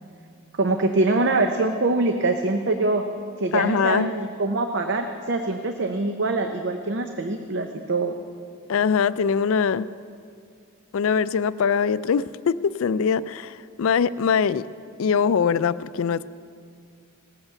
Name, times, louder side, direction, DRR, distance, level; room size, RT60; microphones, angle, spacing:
voice 1, 0.6-3.0 3.4-8.1, right 2 dB, 55° right, 5 dB, 0.7 m, -24 dB
voice 2, 3.5-4.1 8.7-9.9 10.9-14.7 15.0-16.3, left 6 dB, 70° left, 16 dB, 0.4 m, -22 dB
18.0 x 8.0 x 7.0 m, 2.3 s
head